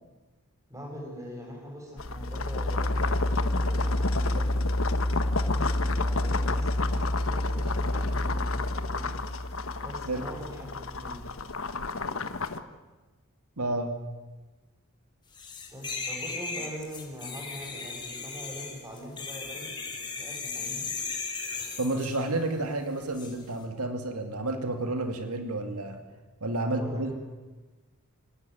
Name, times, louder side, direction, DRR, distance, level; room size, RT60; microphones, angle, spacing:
voice 1, 0.7-4.6 5.4-9.2 9.8-10.7 11.0-11.2 15.7-19.7 20.2-20.9 26.7-27.1, equal, 15° right, 0 dB, 7.1 m, -42 dB
sound 1, 2.0-12.6, left 2 dB, 65° left, 1.4 m, -28 dB
voice 2, 13.6-14.0 21.8-26.0 26.4-27.1, right 2 dB, 90° right, 7 dB, 2.4 m, -30 dB
sound 2, 15.3-22.2 23.1-23.3, left 4 dB, 20° left, 3.7 m, -36 dB
26.5 x 18.0 x 9.4 m, 1.2 s
head